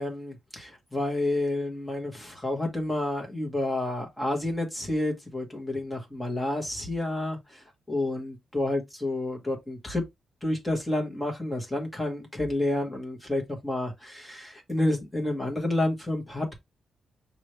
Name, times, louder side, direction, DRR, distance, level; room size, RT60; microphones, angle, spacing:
voice 1, 0.0-10.0 10.4-16.5, left 1 dB, 5° left, 1.5 m, -30 dB
6.1 x 2.6 x 3.2 m
wide cardioid pair, 155°, 0 cm